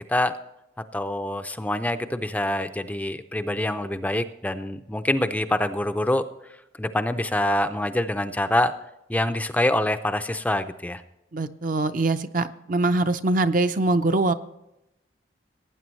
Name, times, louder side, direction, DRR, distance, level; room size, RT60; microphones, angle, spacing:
voice 1, 0.9-6.3 6.8-8.7 9.1-11.0, left 1 dB, 10° left, 9 dB, 0.4 m, -25 dB
voice 2, 11.3-14.3, right 2 dB, 45° right, 9 dB, 0.6 m, -23 dB
18.5 x 9.2 x 3.1 m, 0.87 s
head